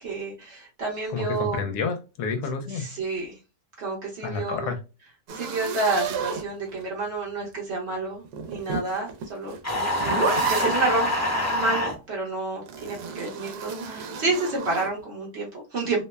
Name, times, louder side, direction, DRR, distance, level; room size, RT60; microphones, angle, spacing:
voice 1, 0.0-1.6 2.7-3.4 3.8-4.7 5.3-11.1 11.5-16.0, right 3 dB, 55° right, -3 dB, 0.8 m, -29 dB
voice 2, 1.1-2.9 4.2-4.8, left 5 dB, 80° left, 5 dB, 1.1 m, -29 dB
sound 1, 5.3-7.0 8.2-10.9 12.7-14.9, right 5 dB, 75° right, 1.1 m, -31 dB
sound 2, 9.6-11.9, left 1 dB, 15° left, 0.6 m, -25 dB
2.8 x 2.1 x 2.2 m, 0.30 s
omnidirectional pair, 1.7 m